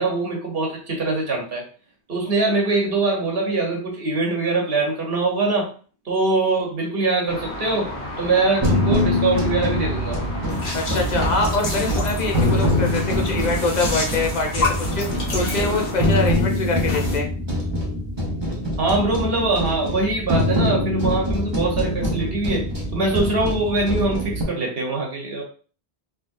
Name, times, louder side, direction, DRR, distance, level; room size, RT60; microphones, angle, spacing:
voice 1, 0.0-1.6 2.1-5.7 6.1-7.9 8.2-10.2 18.8-22.6 22.9-25.4, right 3 dB, 65° right, 0 dB, 1.3 m, -23 dB
sound 1, 7.3-16.3, left 1 dB, 90° left, 1.2 m, -34 dB
sound 2, 8.6-24.4, left 1 dB, 25° right, 1.0 m, -24 dB
sound 3, 10.5-17.2, left 3 dB, 60° left, 1.3 m, -31 dB
voice 2, 10.7-15.1 15.3-17.3, left 3 dB, 45° left, 2 dB, 0.8 m, -24 dB
4.0 x 3.1 x 2.6 m, 0.40 s
omnidirectional pair, 1.1 m